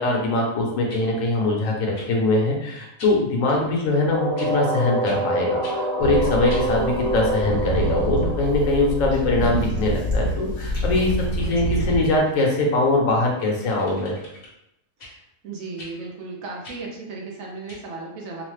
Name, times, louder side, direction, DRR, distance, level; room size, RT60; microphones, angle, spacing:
voice 1, 0.0-14.2, left 2 dB, 70° left, -1 dB, 1.1 m, -22 dB
sound 1, 0.9-1.1 1.9-2.1 3.0-3.2 4.4-4.5 5.0-5.2 5.6-5.8 6.5-6.7 10.3-10.4 10.7-10.9 11.5-12.6 13.4-14.5 15.0-15.1 15.8-15.9 16.6-16.8 17.7-17.8, left 2 dB, 50° left, 0.8 m, -43 dB
voice 2, 3.4-3.9 11.3-11.9 15.0-15.2 15.4-18.4, right 3 dB, 75° right, -1 dB, 1.1 m, -36 dB
sound 2, 4.1-9.8, right 1 dB, 30° right, 0.5 m, -27 dB
sound 3, 6.0-12.2, right 1 dB, 45° right, 0.9 m, -26 dB
3.0 x 2.0 x 3.1 m, 0.83 s
omnidirectional pair, 1.5 m